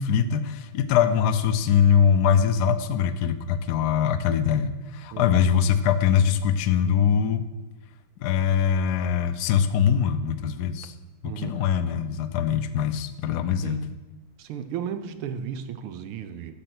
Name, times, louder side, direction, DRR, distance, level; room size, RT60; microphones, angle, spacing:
voice 1, 0.0-7.4 8.2-10.9 11.2-13.8, left 8 dB, 70° left, 10 dB, 1.0 m, -22 dB
voice 2, 14.4-16.5, right 8 dB, 90° right, 9 dB, 1.6 m, -34 dB
10.0 x 6.6 x 6.0 m, 1.1 s
omnidirectional pair, 2.3 m